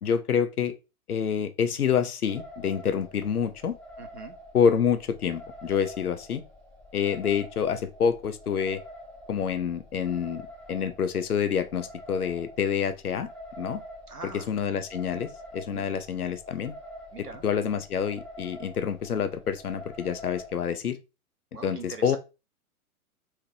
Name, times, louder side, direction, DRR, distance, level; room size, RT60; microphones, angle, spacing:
voice 1, 0.0-0.7 1.1-3.8 4.5-6.4 6.9-8.8 9.3-10.4 10.7-13.3 13.6-13.8 14.3-16.7 17.2-21.0 21.6-22.2, left 7 dB, 75° left, 0.8 m, -27 dB
sound 1, 2.3-20.5, equal, ahead, 1.3 m, -46 dB
voice 2, 4.0-4.4 14.1-14.5 15.7-16.0 17.1-17.8 21.5-22.2, right 4 dB, 85° right, 1.2 m, -43 dB
4.4 x 3.6 x 2.8 m
figure-of-eight pair, 105°, 45 cm